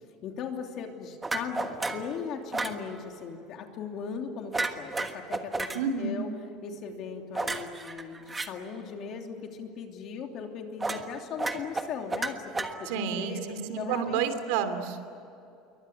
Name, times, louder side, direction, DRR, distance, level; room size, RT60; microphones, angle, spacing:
voice 1, 0.0-6.3 6.6-13.4 13.8-14.2, left 6 dB, 40° left, 3 dB, 3.0 m, -38 dB
sound 1, 1.2-2.1 2.5-2.8 4.5-5.8 7.3-8.5 10.8-11.1 11.4-13.1, right 3 dB, 10° right, 1.4 m, -32 dB
voice 2, 5.7-6.2 12.8-15.1, right 7 dB, 80° right, 10 dB, 2.9 m, -30 dB
28.5 x 23.5 x 8.1 m, 2.6 s
cardioid pair, 170°, 0 cm